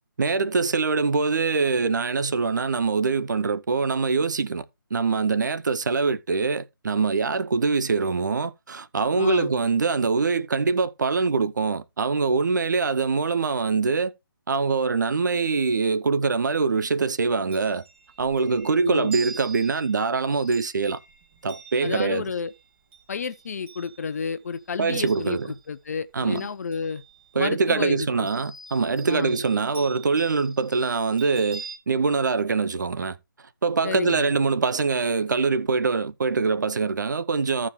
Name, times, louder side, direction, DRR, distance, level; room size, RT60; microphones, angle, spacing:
voice 1, 0.2-4.6 4.9-14.1 14.5-17.8 18.2-21.0 21.4-22.2 24.8-25.5 26.1-26.5 27.3-33.2 33.6-37.7, right 4 dB, 55° right, 0.9 m, -24 dB
voice 2, 9.2-9.5 18.8-19.1 21.8-22.5 23.1-27.0 27.3-28.3 29.1-29.4 33.8-34.3, left 5 dB, 45° left, 0.7 m, -31 dB
Chime, 17.3-25.7 26.1-27.5 28.3-31.8, right 5 dB, 30° right, 4.4 m, -44 dB
14.5 x 4.9 x 3.6 m
figure-of-eight pair, 150°, 12 cm